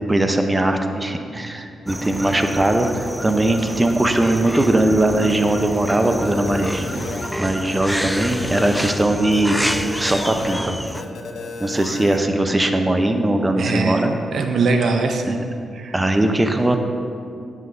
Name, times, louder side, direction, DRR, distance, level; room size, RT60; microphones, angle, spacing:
voice 1, 0.1-6.9 7.4-9.6 10.0-10.8 11.6-14.1 15.3-15.4 15.9-16.8, right 1 dB, 20° right, 6 dB, 0.7 m, -20 dB
sound 1, 1.9-11.0, equal, ahead, 0.3 m, -29 dB
sound 2, 6.0-7.3 7.7-8.9 9.3-10.5 10.9-12.2, left 4 dB, 80° left, 0.8 m, -33 dB
voice 2, 13.6-15.5 15.7-15.9, right 3 dB, 70° right, 5 dB, 0.5 m, -22 dB
9.6 x 7.4 x 2.6 m, 2.5 s
cardioid pair, 65°, 0 cm